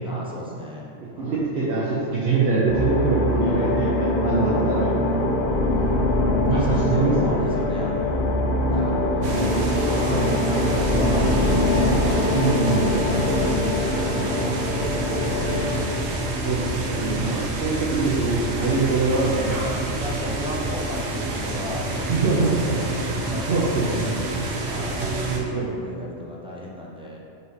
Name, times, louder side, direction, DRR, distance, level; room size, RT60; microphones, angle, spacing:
voice 1, 0.0-1.4 3.2-3.6 5.7-6.1 6.5-8.3 8.7-12.3 13.0-15.9 19.7-24.1 24.6-27.2, equal, 5° right, -5 dB, 0.5 m, -35 dB
voice 2, 1.2-4.9 6.5-7.1 12.3-12.9 16.4-19.6 22.1-22.5 23.5-24.0 25.0-25.6, right 3 dB, 55° right, -7 dB, 0.9 m, -23 dB
sound 1, 2.7-16.0, left 1 dB, 45° left, 0.6 m, -23 dB
sound 2, 9.2-25.4, right 2 dB, 80° right, 1.1 m, -28 dB
5.5 x 5.4 x 3.2 m, 2.6 s
omnidirectional pair, 1.3 m